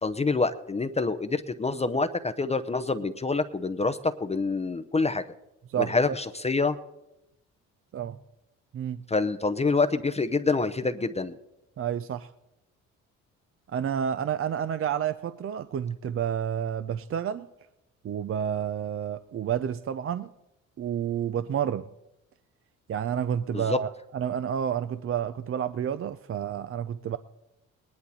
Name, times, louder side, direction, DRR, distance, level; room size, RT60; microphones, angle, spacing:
voice 1, 0.0-5.2 5.8-6.8 9.1-11.4 23.5-23.8, left 3 dB, 20° left, 10 dB, 0.7 m, -26 dB
voice 2, 11.8-12.3 13.7-17.5 18.0-20.3 20.8-21.9 22.9-27.2, right 9 dB, 45° right, 12 dB, 0.6 m, -30 dB
19.5 x 11.0 x 4.2 m, 0.90 s
supercardioid pair, 75°, 32 cm